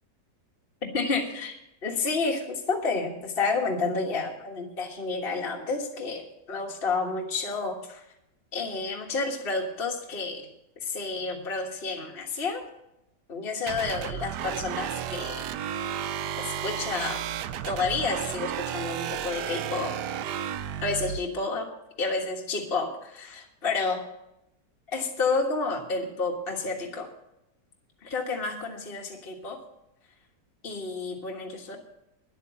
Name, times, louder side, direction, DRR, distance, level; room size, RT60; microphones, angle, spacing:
voice 1, 0.9-8.1 8.5-10.4 10.8-12.6 13.3-15.5 16.4-17.2 17.6-19.9 20.8-21.7 22.0-24.0 24.9-27.1 28.0-29.6 30.6-31.8, left 4 dB, 35° left, -1 dB, 1.6 m, -30 dB
sound 1, 13.7-21.2, right 10 dB, 75° right, 1.2 m, -33 dB
10.5 x 9.0 x 7.5 m, 0.85 s
omnidirectional pair, 1.9 m